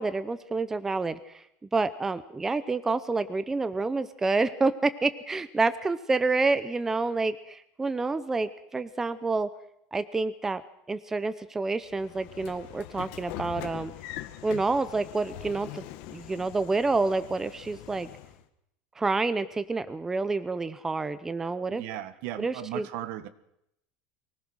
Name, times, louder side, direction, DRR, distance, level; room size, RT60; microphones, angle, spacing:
voice 1, 0.0-1.4 1.7-9.5 9.9-10.6 10.9-13.9 14.4-15.8 16.1-18.1 19.0-21.8 22.4-22.8, right 3 dB, 10° right, 12 dB, 0.7 m, -28 dB
Train / Sliding door, 11.9-18.4, left 13 dB, 60° left, 1.9 m, -43 dB
voice 2, 21.7-23.3, right 13 dB, 60° right, 13 dB, 1.5 m, -36 dB
24.0 x 19.0 x 6.3 m, 0.78 s
cardioid pair, 165°, 4 cm